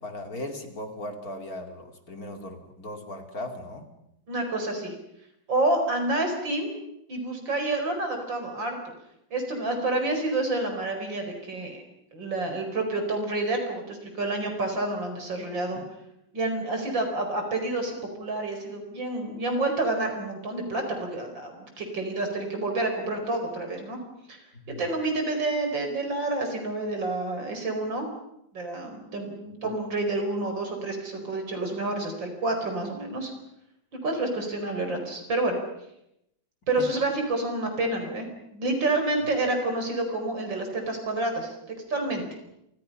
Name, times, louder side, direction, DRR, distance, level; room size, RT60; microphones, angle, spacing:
voice 1, 0.0-3.9 15.7-15.8 24.5-24.9 36.8-37.0, left 1 dB, 50° left, 5 dB, 3.1 m, -38 dB
voice 2, 4.3-4.9 5.5-6.7 7.1-8.9 9.3-11.8 12.1-15.8 16.3-24.0 24.3-24.4 24.7-28.1 28.5-33.3 34.0-35.6 36.7-38.3 38.5-42.2, right 2 dB, 70° right, 4 dB, 5.7 m, -29 dB
30.0 x 26.0 x 5.7 m, 0.83 s
omnidirectional pair, 2.1 m